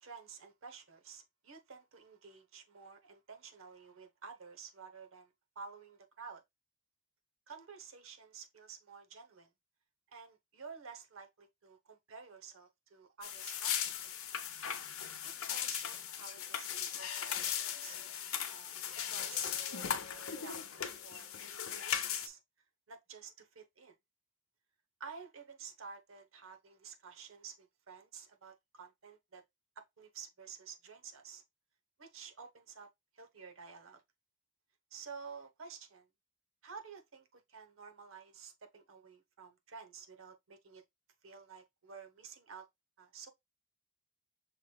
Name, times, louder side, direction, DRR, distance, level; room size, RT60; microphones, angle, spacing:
voice 1, 0.0-6.4 7.5-9.5 10.1-14.1 15.2-18.0 18.5-18.7 19.1-22.4 22.9-23.9 25.0-29.4 29.8-31.4 32.0-32.9 33.1-34.0 34.9-36.1 36.6-40.8 41.2-42.7 43.0-43.3, right 5 dB, 80° right, 0.8 m, -52 dB
sound 1, 13.2-22.3, left 9 dB, 85° left, 0.7 m, -38 dB
5.9 x 3.1 x 2.3 m
head